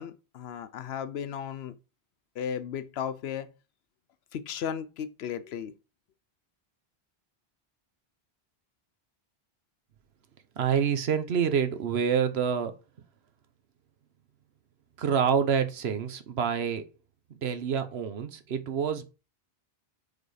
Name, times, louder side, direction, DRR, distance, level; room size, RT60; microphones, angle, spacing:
voice 1, 0.0-1.7 2.4-3.5 4.3-5.7, left 8 dB, 75° left, 0.9 m, -35 dB
voice 2, 10.6-12.7 15.0-16.9 17.4-19.1, right 7 dB, 75° right, 1.1 m, -27 dB
4.9 x 4.2 x 4.8 m
omnidirectional pair, 1.1 m